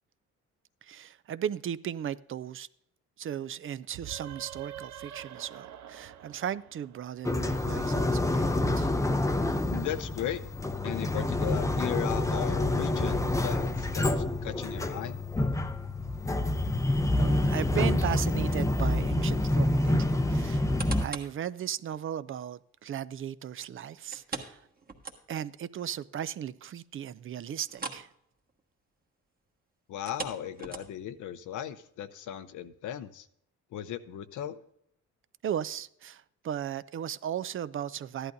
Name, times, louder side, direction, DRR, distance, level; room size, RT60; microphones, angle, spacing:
voice 1, 0.8-2.7 3.2-8.9 17.2-20.7 21.0-24.6 25.3-28.1 35.4-38.3, right 9 dB, 45° right, 0.4 m, -36 dB
sound 1, 3.9-7.5, right 10 dB, 65° right, 0.7 m, -46 dB
sound 2, 7.2-21.1, left 1 dB, 10° left, 0.6 m, -27 dB
voice 2, 9.7-10.4 10.8-15.2 29.9-33.3 33.7-34.6, left 10 dB, 80° left, 0.7 m, -37 dB
sound 3, 20.5-21.4 21.9-22.0 24.1-25.6 25.9-26.0 26.4-26.5 27.7-28.1 28.4-28.6 29.9-31.2 31.8-31.9, right 3 dB, 30° right, 1.4 m, -40 dB
14.5 x 11.0 x 2.6 m
cardioid pair, 90°, 30 cm